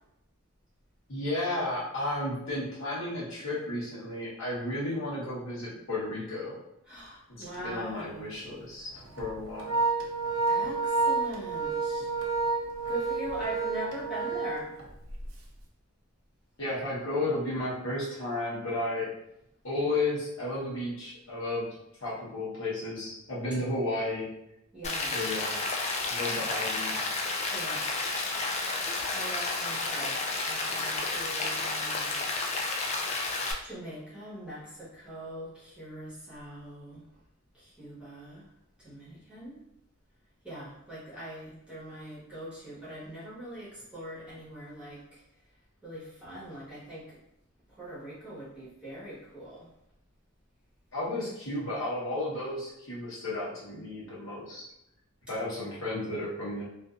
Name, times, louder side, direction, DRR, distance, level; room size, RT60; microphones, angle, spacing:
voice 1, 1.1-6.6 7.3-8.9 9.2-9.9 16.6-19.1 19.6-21.7 22.0-24.3 25.1-25.6 26.1-27.0 50.9-54.6 55.3-56.6, left 2 dB, 70° left, -8 dB, 1.0 m, -33 dB
voice 2, 6.9-8.2 10.5-12.2 12.9-14.7 24.7-25.1 27.5-27.9 29.1-32.2 33.6-37.0 37.5-38.5 38.8-39.6 40.4-45.2 45.8-47.2 47.7-49.7, right 1 dB, 5° right, -10 dB, 1.1 m, -42 dB
Organ, 7.4-7.6 8.0-8.1 9.0-15.3, right 4 dB, 75° right, 0.5 m, -30 dB
Rain, 24.8-33.5, left 3 dB, 30° left, 0.3 m, -31 dB
2.5 x 2.5 x 2.4 m, 0.82 s
head